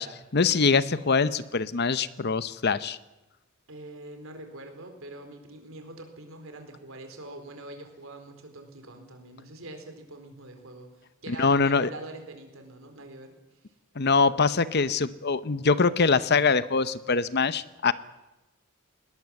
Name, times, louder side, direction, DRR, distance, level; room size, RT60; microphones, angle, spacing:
voice 1, 0.0-3.0 11.3-11.9 14.0-17.9, left 4 dB, 50° left, 15 dB, 0.8 m, -23 dB
voice 2, 3.7-13.6, right 2 dB, 65° right, 6 dB, 4.2 m, -44 dB
20.5 x 19.5 x 7.7 m, 1.0 s
head